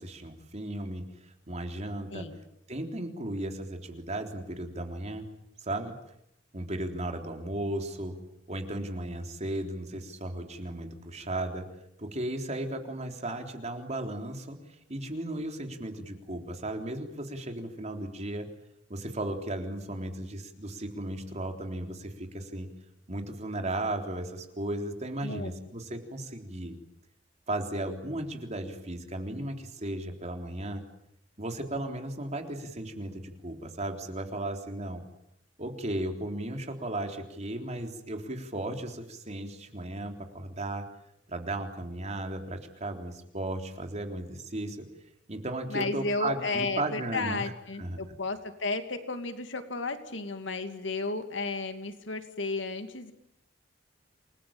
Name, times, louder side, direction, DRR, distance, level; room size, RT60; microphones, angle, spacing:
voice 1, 0.0-2.3 2.7-5.3 5.6-5.9 6.5-8.2 8.5-11.7 12.0-14.6 14.9-18.5 18.9-22.7 23.1-26.7 27.5-30.8 31.4-35.0 35.6-40.9 41.3-44.8 45.3-47.5 47.8-48.1, right 1 dB, 35° right, 4 dB, 3.7 m, -35 dB
voice 2, 45.7-53.1, left 3 dB, 70° left, 8 dB, 2.6 m, -33 dB
28.5 x 20.5 x 8.9 m, 0.77 s
head